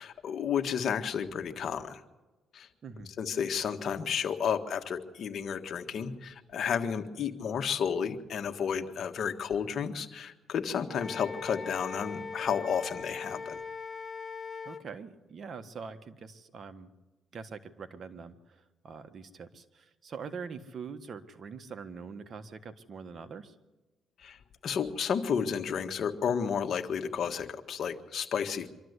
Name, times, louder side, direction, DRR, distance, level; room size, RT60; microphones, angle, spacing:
voice 1, 0.0-2.0 2.5-2.7 3.2-13.6 24.2-28.7, left 7 dB, 60° left, 6 dB, 1.6 m, -32 dB
voice 2, 2.8-3.1 14.6-16.9 17.3-23.5, right 5 dB, 50° right, 8 dB, 1.5 m, -44 dB
Wind instrument woodwind instrument, 10.9-14.8, left 5 dB, 30° left, 0.9 m, -40 dB
25.0 x 12.5 x 8.2 m, 1.1 s
cardioid pair, 90°, 0 cm